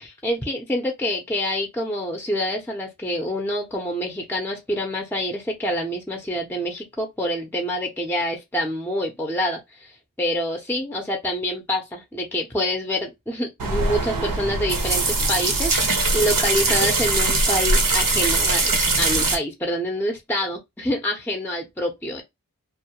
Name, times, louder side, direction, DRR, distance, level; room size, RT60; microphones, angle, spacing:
voice 1, 0.0-22.2, equal, 5° left, 0.6 m, -27 dB
sound 1, 13.6-19.4, right 3 dB, 75° right, 0.7 m, -21 dB
2.2 x 2.0 x 2.8 m
wide cardioid pair, 45°, 34 cm